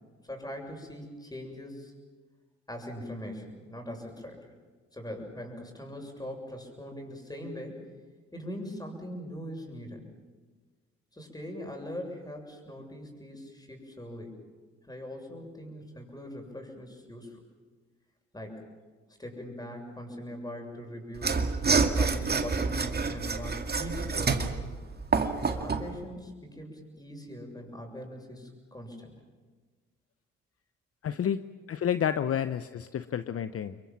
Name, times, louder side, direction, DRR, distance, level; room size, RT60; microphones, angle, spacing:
voice 1, 0.2-1.9 2.7-4.4 4.9-7.9 8.3-10.0 11.1-14.4 14.8-17.4 18.3-18.6 19.2-21.4 22.0-24.6 25.4-29.2, left 1 dB, 15° left, 2 dB, 7.2 m, -41 dB
Mechanisms / Sawing, 21.2-25.9, right 4 dB, 35° right, 2.1 m, -27 dB
voice 2, 31.0-31.4 31.7-33.8, left 9 dB, 50° left, 12 dB, 0.8 m, -30 dB
26.5 x 22.5 x 7.3 m, 1.4 s
supercardioid pair, 60°, 29 cm